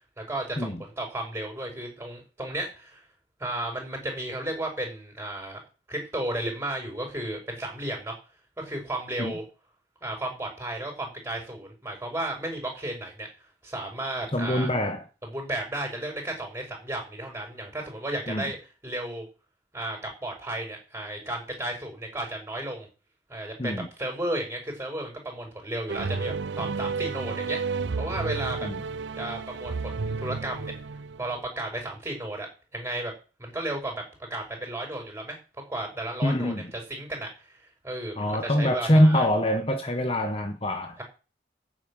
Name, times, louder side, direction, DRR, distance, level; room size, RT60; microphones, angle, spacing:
voice 1, 0.2-3.0 3.4-5.6 5.9-8.1 8.6-9.4 10.0-13.3 13.6-14.7 15.2-18.6 18.8-19.2 19.7-22.9 23.3-27.6 28.0-28.7 29.2-30.7 31.2-33.1 33.4-34.0 34.3-35.4 35.7-37.6 37.8-39.3 41.0-41.1, right 1 dB, 15° right, 5.6 m, -33 dB
voice 2, 14.3-15.0 18.3-18.5 23.6-23.9 28.6-28.8 36.2-36.7 38.2-41.0, equal, 30° left, 1.1 m, -24 dB
sound 1, 25.9-31.4, right 4 dB, 80° right, 0.6 m, -32 dB
9.7 x 7.5 x 8.8 m
head